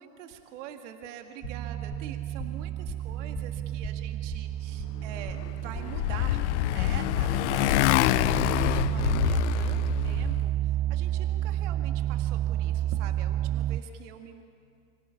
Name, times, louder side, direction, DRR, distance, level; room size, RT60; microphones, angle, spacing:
voice 1, 0.0-14.4, right 9 dB, 55° right, 6 dB, 1.9 m, -45 dB
sound 1, 1.4-6.4, left 8 dB, 25° left, 1.1 m, -44 dB
sound 2, 1.4-13.8, right 12 dB, 25° right, 0.5 m, -31 dB
Motorcycle, 5.4-10.4, left 17 dB, 55° left, 0.5 m, -26 dB
25.5 x 17.0 x 8.7 m, 2.4 s
hypercardioid pair, 105°, 44 cm